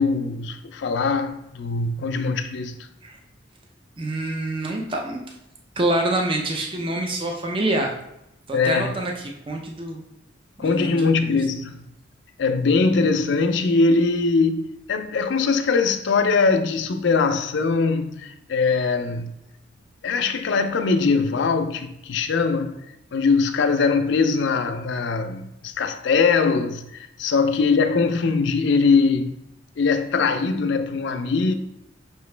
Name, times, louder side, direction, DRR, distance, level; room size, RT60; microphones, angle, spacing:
voice 1, 0.0-2.8 8.5-9.0 10.6-11.8 12.4-19.3 20.0-22.8 23.1-29.4 29.8-31.5, left 4 dB, 65° left, 0.4 m, -21 dB
voice 2, 4.0-5.2 5.8-7.9 8.5-9.1 9.5-10.0 10.6-11.4, right 1 dB, 25° right, 0.5 m, -26 dB
5.6 x 2.9 x 3.2 m
head